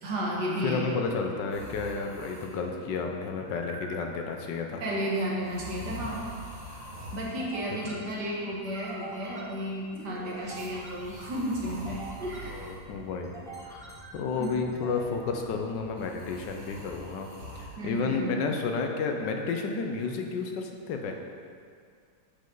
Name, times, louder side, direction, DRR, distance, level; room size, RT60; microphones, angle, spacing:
voice 1, 0.0-0.9 4.8-6.3 7.1-12.6 14.3-14.5 17.8-18.4, equal, 70° right, -4 dB, 2.0 m, -33 dB
voice 2, 0.6-4.9 7.9-8.0 12.5-13.3 13.6-13.9 14.1-17.3 17.6-21.2, left 4 dB, 85° left, 3 dB, 1.5 m, -31 dB
sound 1, 1.5-2.7 3.4-4.3 5.4-7.4 8.6-9.6 10.7-12.8 14.0-14.7 16.0-17.8 19.1-19.6, equal, 45° right, 2.3 m, -44 dB
sound 2, 6.7-17.7, right 2 dB, ahead, 1.1 m, -48 dB
11.0 x 5.3 x 3.9 m, 2.2 s
omnidirectional pair, 1.9 m